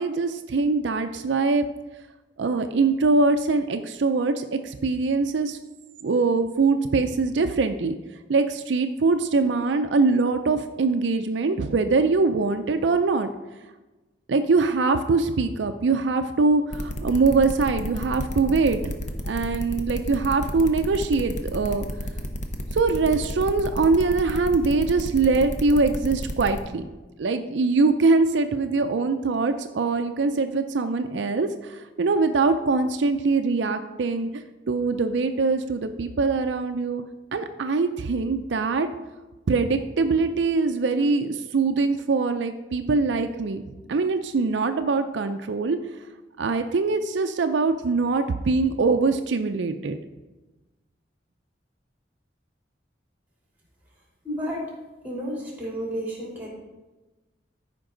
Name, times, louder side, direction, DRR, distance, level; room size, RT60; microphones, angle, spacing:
voice 1, 0.0-1.7 2.4-5.6 6.0-8.0 8.3-13.3 14.3-18.9 19.2-21.9 22.7-26.9 27.2-34.4 34.7-37.1 37.3-38.9 39.5-43.6 43.9-45.8 46.4-50.0, right 3 dB, 70° right, 7 dB, 0.5 m, -23 dB
sound 1, 16.7-26.6, equal, 40° left, 0.9 m, -31 dB
voice 2, 54.2-54.7 55.0-56.5, equal, 10° right, -3 dB, 3.2 m, -31 dB
13.5 x 5.2 x 3.8 m, 1.2 s
head